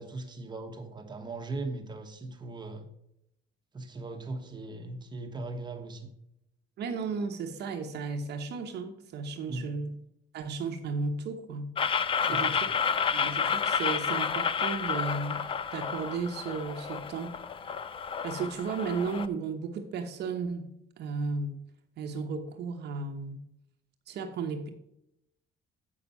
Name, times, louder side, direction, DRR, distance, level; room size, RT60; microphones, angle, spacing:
voice 1, 0.0-2.9 3.7-6.1 9.5-9.7 12.3-12.6, right 2 dB, 20° right, 4 dB, 1.2 m, -39 dB
voice 2, 6.8-9.9 10.3-11.8 12.3-15.4 15.7-17.4 17.7-17.8 18.2-20.7 21.0-21.6 22.0-23.4 24.1-24.7, right 4 dB, 60° right, 4 dB, 1.1 m, -34 dB
sound 1, 11.8-19.3, left 6 dB, 25° left, 0.4 m, -30 dB
8.1 x 6.1 x 5.5 m, 0.79 s
cardioid pair, 145°, 20 cm